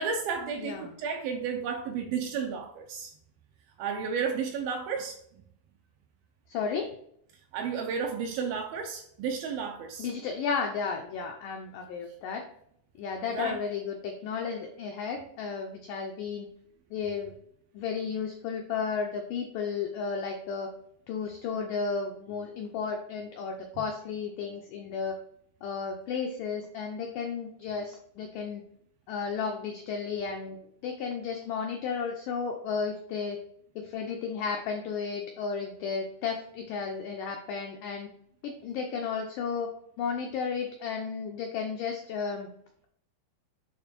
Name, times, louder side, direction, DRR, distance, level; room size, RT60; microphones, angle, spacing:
voice 1, 0.0-3.1 3.8-5.2 7.5-10.1 13.3-13.6, right 6 dB, 80° right, 4 dB, 2.2 m, -32 dB
voice 2, 0.6-0.9 6.5-6.9 10.0-12.4 13.0-16.5 16.9-17.3 17.7-20.7 21.1-25.1 25.6-28.6 29.1-33.4 33.8-38.1 38.4-39.7 40.0-42.5, left 5 dB, 90° left, 2 dB, 1.9 m, -33 dB
8.5 x 3.3 x 4.4 m, 0.69 s
omnidirectional pair, 4.7 m